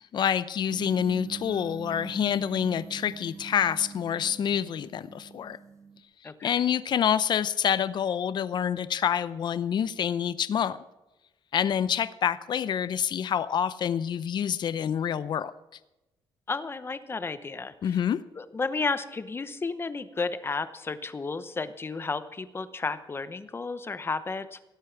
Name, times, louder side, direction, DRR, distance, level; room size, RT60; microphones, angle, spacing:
voice 1, 0.0-5.6 6.4-10.8 11.5-15.5 17.8-18.2, left 8 dB, 55° left, 16 dB, 0.6 m, -27 dB
sound 1, 0.7-6.0, right 6 dB, 35° right, 1.2 m, -43 dB
voice 2, 16.5-18.0 18.4-24.6, left 4 dB, 25° left, 12 dB, 0.9 m, -32 dB
17.5 x 8.4 x 5.9 m, 1.0 s
cardioid pair, 105°, 9 cm